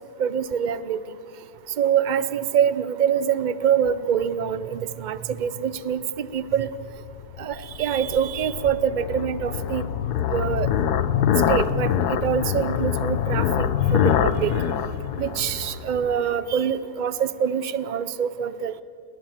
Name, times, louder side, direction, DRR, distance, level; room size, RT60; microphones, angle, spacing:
voice 1, 0.2-1.0 1.8-6.7 7.4-9.9 10.3-10.7 11.5-14.6 15.2-18.8, right 8 dB, 50° right, 15 dB, 0.5 m, -25 dB
sound 1, 6.7-16.3, left 9 dB, 70° left, 1.4 m, -25 dB
30.0 x 20.5 x 7.3 m, 2.5 s
omnidirectional pair, 1.8 m